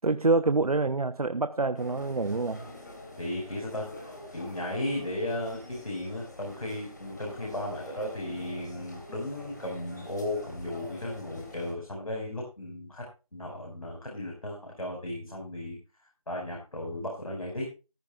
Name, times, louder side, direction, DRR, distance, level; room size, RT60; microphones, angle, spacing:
voice 1, 0.0-2.6, right 3 dB, 85° right, 0.7 m, -26 dB
sound 1, 1.8-11.7, left 1 dB, 30° left, 2.6 m, -46 dB
voice 2, 3.2-3.9 4.3-13.0 13.3-15.8 16.3-17.7, left 1 dB, 70° left, 5.4 m, -35 dB
14.5 x 13.5 x 2.4 m
figure-of-eight pair, 175°, 19 cm